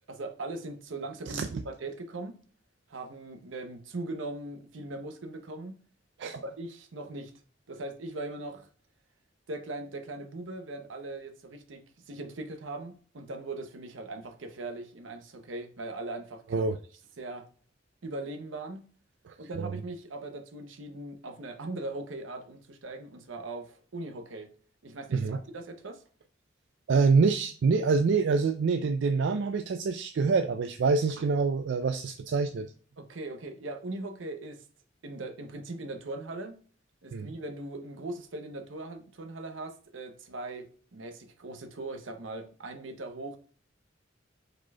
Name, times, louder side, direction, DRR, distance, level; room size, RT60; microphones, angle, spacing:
voice 1, 0.1-2.4 2.9-5.7 6.3-7.3 7.7-8.7 9.5-16.7 17.2-17.5 18.0-18.9 19.4-24.5 24.8-26.0 33.0-34.6 35.0-36.6 37.0-43.4, right 2 dB, 80° right, 0.8 m, -40 dB
voice 2, 19.3-19.7 25.1-25.4 26.9-32.7 37.1-37.3, right 4 dB, 65° right, 0.4 m, -26 dB
4.9 x 4.3 x 2.3 m
head